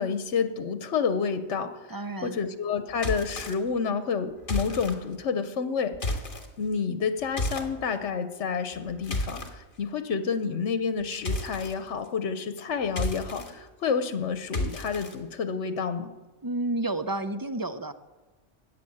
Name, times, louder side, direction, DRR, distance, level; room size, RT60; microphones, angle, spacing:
voice 1, 0.0-1.8 2.2-6.2 6.6-16.1, left 5 dB, 75° left, 10 dB, 1.2 m, -29 dB
voice 2, 1.9-2.4 16.4-17.9, right 2 dB, 25° right, 10 dB, 0.5 m, -30 dB
Monster footsteps on wood, 2.9-3.5 4.4-4.9 5.9-6.5 7.4-7.7 8.7-9.5 11.2-11.7 12.8-13.5 14.5-15.1, left 1 dB, 45° left, 1.7 m, -31 dB
14.0 x 9.4 x 8.7 m, 1.2 s
omnidirectional pair, 1.2 m